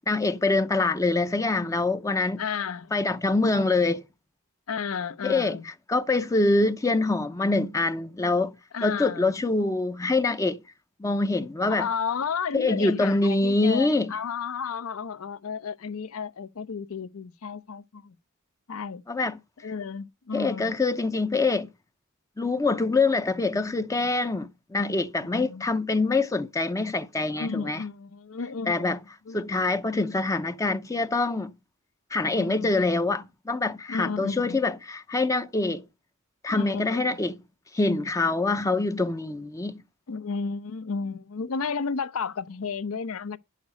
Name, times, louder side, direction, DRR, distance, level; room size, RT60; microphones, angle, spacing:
voice 1, 0.1-2.4 2.9-4.0 5.2-8.5 8.8-10.6 11.0-11.9 12.5-14.1 19.1-19.4 20.3-21.7 22.4-27.8 28.7-29.0 29.3-31.5 32.1-35.8 36.4-37.4 37.7-39.8, left 3 dB, 15° left, 0.5 m, -25 dB
voice 2, 2.4-2.9 4.7-5.6 8.7-9.3 11.7-18.2 18.7-19.0 19.6-20.7 25.2-25.7 27.3-29.0 29.3-29.5 32.3-32.8 33.9-34.6 36.5-37.2 40.1-43.4, left 5 dB, 75° left, 0.6 m, -33 dB
10.5 x 6.6 x 5.1 m
head